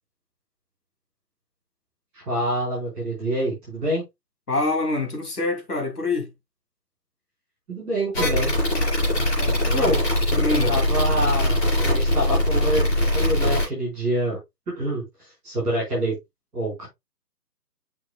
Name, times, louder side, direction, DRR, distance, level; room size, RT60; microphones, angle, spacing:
voice 1, 2.1-4.0 7.7-8.6 9.7-10.0 10.7-12.9 13.1-14.4 14.7-15.0 15.4-16.2 16.5-16.9, right 1 dB, 5° right, 2.4 m, -26 dB
voice 2, 4.5-6.3 9.1-10.0 10.3-10.8, left 2 dB, 65° left, 2.6 m, -26 dB
sound 1, 8.1-13.7, left 1 dB, 40° left, 4.6 m, -21 dB
6.9 x 6.0 x 2.3 m
hypercardioid pair, 180°, 49 cm